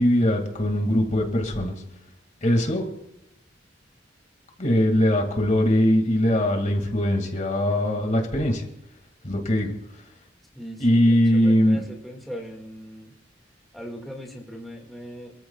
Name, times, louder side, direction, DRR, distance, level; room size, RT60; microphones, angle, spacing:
voice 1, 0.0-1.7 2.4-2.9 4.6-8.6 9.2-9.8 10.8-11.8, left 1 dB, 40° left, 3 dB, 2.2 m, -21 dB
voice 2, 10.5-13.1 13.7-15.4, equal, ahead, -1 dB, 1.9 m, -39 dB
27.0 x 14.0 x 2.4 m, 0.83 s
head